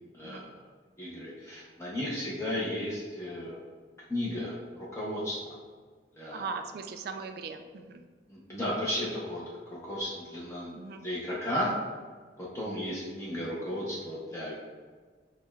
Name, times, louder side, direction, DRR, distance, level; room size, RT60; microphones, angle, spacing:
voice 1, 0.1-0.6 1.0-3.6 4.1-5.6 6.2-6.4 8.3-9.4 9.7-11.7 12.4-14.5, left 1 dB, 15° left, -6 dB, 0.6 m, -34 dB
voice 2, 6.3-8.0 10.8-11.0, right 4 dB, 60° right, 7 dB, 0.3 m, -39 dB
6.2 x 2.1 x 2.3 m, 1.5 s
head